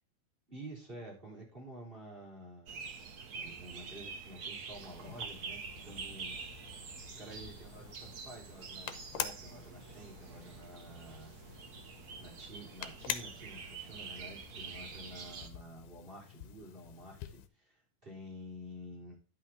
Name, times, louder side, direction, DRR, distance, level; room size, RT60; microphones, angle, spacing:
voice 1, 0.5-2.8 3.3-6.7 7.2-11.3 12.2-19.2, right 1 dB, 15° right, -2 dB, 3.7 m, -50 dB
sound 1, 2.7-15.5, right 5 dB, 75° right, 0.8 m, -46 dB
sound 2, 4.8-17.5, left 11 dB, 85° left, 2.5 m, -47 dB
11.5 x 6.0 x 4.2 m, 0.35 s
omnidirectional pair, 3.6 m